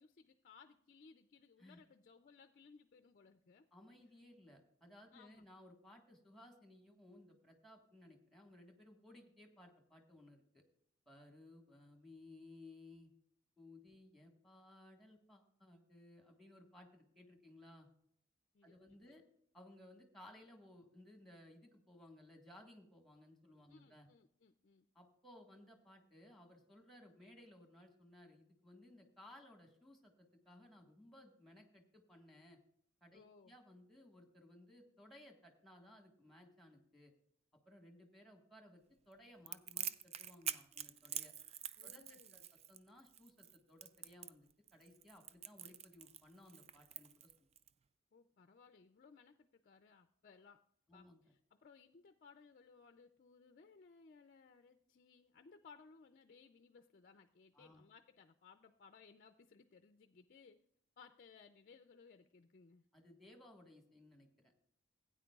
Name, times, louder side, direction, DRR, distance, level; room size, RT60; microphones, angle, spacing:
voice 1, 0.0-3.7 5.1-5.5 18.5-19.0 23.7-24.9 33.1-33.5 41.8-42.5 48.1-50.6 50.9-60.6 61.0-62.9, left 5 dB, 45° left, 8 dB, 0.4 m, -63 dB
voice 2, 3.7-10.6 11.0-13.1 13.6-17.9 18.6-19.2 19.5-24.1 24.9-32.6 33.0-37.1 37.6-41.3 41.8-42.4 42.7-47.3 50.9-51.3 57.5-57.8 62.9-64.5, left 1 dB, ahead, 3 dB, 1.5 m, -60 dB
Crackle, 39.5-47.7, right 10 dB, 30° right, 0.3 m, -46 dB
16.5 x 9.2 x 2.4 m, 0.69 s
head